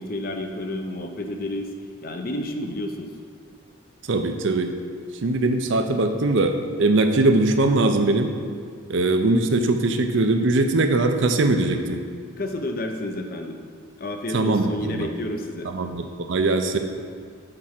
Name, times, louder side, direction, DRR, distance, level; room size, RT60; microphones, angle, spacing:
voice 1, 0.0-1.7 2.0-3.1 12.4-13.6 14.0-15.7, left 1 dB, 45° left, 4 dB, 0.6 m, -30 dB
voice 2, 4.1-4.7 5.2-8.3 8.9-12.0 14.3-15.1 15.7-16.8, right 2 dB, 60° right, 6 dB, 0.5 m, -21 dB
6.7 x 4.8 x 5.8 m, 2.1 s
head